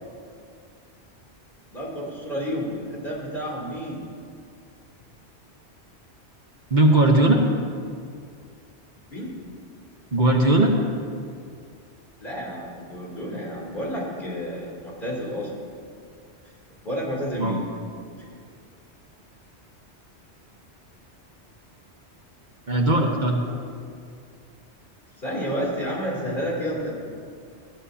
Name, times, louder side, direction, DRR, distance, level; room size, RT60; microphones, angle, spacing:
voice 1, 1.7-4.0 9.1-9.3 12.2-15.5 16.8-17.7 18.2-18.4 23.4-23.6 25.2-27.1, equal, 50° left, -3 dB, 3.4 m, -30 dB
voice 2, 6.7-7.4 10.1-10.7 17.4-17.6 22.7-23.4, right 1 dB, 45° right, 1 dB, 1.2 m, -18 dB
20.5 x 15.5 x 2.8 m, 2.2 s
omnidirectional pair, 1.1 m